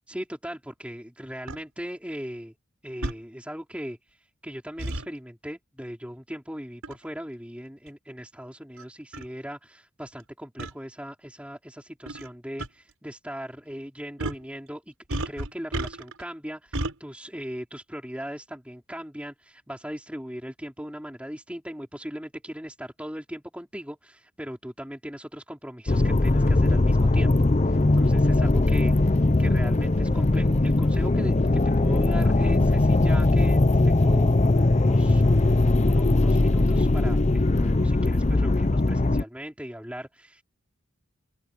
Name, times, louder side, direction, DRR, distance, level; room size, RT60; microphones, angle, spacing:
voice 1, 0.1-2.5 2.8-4.2 4.4-27.3 27.6-40.4, equal, 5° right, 4.6 m, -39 dB
sound 1, 1.5-1.6 3.0-3.2 4.8-5.1 6.8-7.0 7.9-8.0 8.8-8.9 9.1-9.3 10.6-10.7 12.1-12.3 12.6-12.7 14.2-14.5 15.1-16.2 16.7-16.9, right 1 dB, 75° right, 5.6 m, -31 dB
sound 2, 25.9-39.2, left 2 dB, 30° left, 0.6 m, -20 dB
open air
head